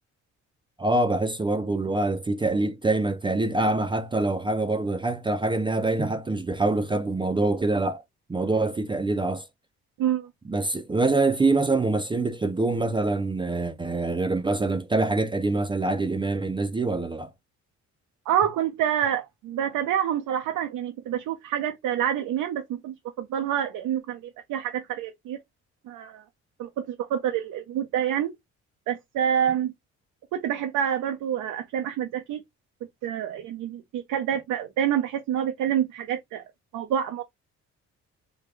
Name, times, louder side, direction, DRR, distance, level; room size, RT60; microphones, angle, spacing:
voice 1, 0.8-8.0 8.3-9.5 10.5-17.3, right 2 dB, 15° right, 0.5 m, -25 dB
voice 2, 18.3-24.2 24.5-25.4 25.9-26.2 26.6-28.3 28.9-29.7 30.3-32.4 33.0-36.4 36.7-37.2, right 9 dB, 85° right, 0.7 m, -27 dB
3.5 x 2.2 x 3.2 m
cardioid pair, 90°, 30 cm